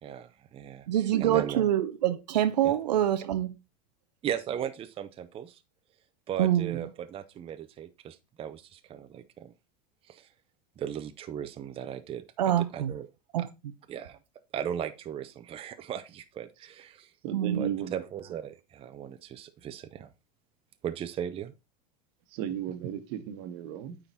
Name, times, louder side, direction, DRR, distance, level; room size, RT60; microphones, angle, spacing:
voice 1, 0.0-0.9 1.2-1.6 2.6-2.7 4.2-5.6 6.3-9.5 10.1-10.3 10.8-13.1 13.9-14.2 14.5-17.1 17.5-20.1 20.8-21.5, right 9 dB, 25° right, 0.6 m, -37 dB
voice 2, 0.9-3.6 6.4-6.8 12.4-12.9 13.3-13.4 17.3-17.6, right 12 dB, 85° right, 0.6 m, -25 dB
voice 3, 17.2-18.0 22.3-24.0, right 9 dB, 55° right, 1.2 m, -34 dB
9.0 x 3.8 x 4.1 m
hypercardioid pair, 105°, 21 cm